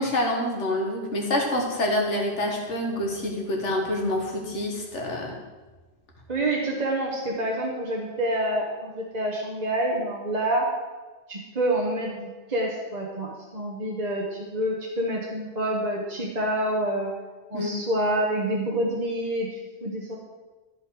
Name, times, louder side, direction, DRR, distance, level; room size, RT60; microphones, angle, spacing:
voice 1, 0.0-5.3 17.5-17.7, left 1 dB, 85° left, 0 dB, 2.1 m, -27 dB
voice 2, 6.3-10.7 11.3-17.1 17.5-20.2, right 1 dB, 40° right, -3 dB, 1.3 m, -27 dB
14.0 x 5.5 x 4.8 m, 1.2 s
omnidirectional pair, 1.2 m